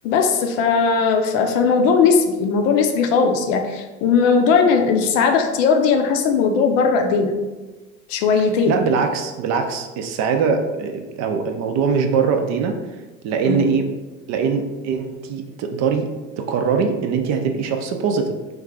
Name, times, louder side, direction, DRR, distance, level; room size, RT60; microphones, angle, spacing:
voice 1, 0.0-7.4 8.1-8.8 13.4-13.7, left 5 dB, 65° left, 5 dB, 0.6 m, -18 dB
voice 2, 8.4-12.8 13.2-13.9 14.3-16.1 16.4-18.4, right 5 dB, 45° right, 5 dB, 0.5 m, -22 dB
3.1 x 2.3 x 3.6 m, 1.2 s
hypercardioid pair, 75°, 41 cm